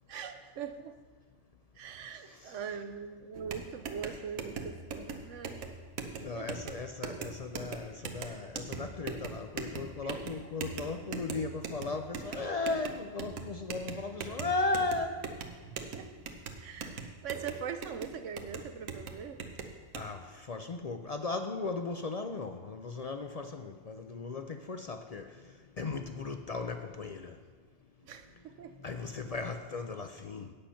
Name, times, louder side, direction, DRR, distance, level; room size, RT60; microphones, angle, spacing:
voice 1, 0.1-1.0 1.8-5.6 6.1-6.5 8.3-8.4 10.0-10.4 15.8-16.1 16.6-19.4 28.0-28.8, right 7 dB, 70° right, 9 dB, 1.0 m, -42 dB
sound 1, 3.4-20.1, right 5 dB, 85° right, 1.3 m, -41 dB
voice 2, 6.2-15.3 19.9-27.4 28.8-30.5, left 3 dB, 60° left, 6 dB, 0.4 m, -36 dB
8.5 x 8.5 x 5.7 m, 1.4 s
omnidirectional pair, 1.4 m